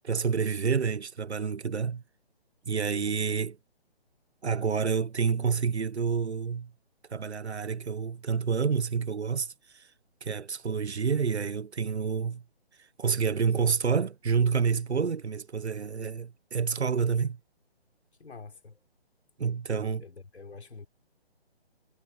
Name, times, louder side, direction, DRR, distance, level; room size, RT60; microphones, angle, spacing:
voice 1, 0.0-2.0 2.7-3.5 4.4-6.7 7.1-9.8 10.2-12.4 13.0-17.4 19.4-20.0, right 6 dB, 85° right, 1.5 m, -28 dB
voice 2, 2.7-3.2 18.2-18.8 19.7-20.9, left 4 dB, 90° left, 4.0 m, -47 dB
hypercardioid pair, 175°, 32 cm